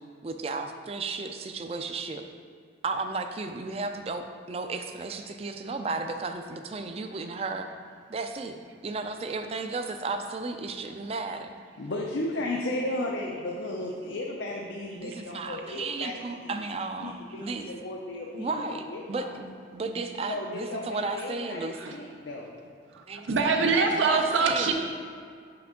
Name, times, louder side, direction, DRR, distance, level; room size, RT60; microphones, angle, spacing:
voice 1, 0.2-2.2 2.8-7.7 8.1-8.6 8.8-11.6 15.0-17.7 18.4-22.0 23.1-23.3 24.0-24.7, right 3 dB, 30° right, 6 dB, 0.3 m, -34 dB
voice 2, 11.8-16.6 17.0-19.4 20.3-22.6, left 1 dB, 85° left, -1 dB, 0.6 m, -34 dB
voice 3, 22.9-24.7, right 4 dB, 90° right, 3 dB, 0.5 m, -24 dB
5.8 x 5.2 x 3.7 m, 2.2 s
head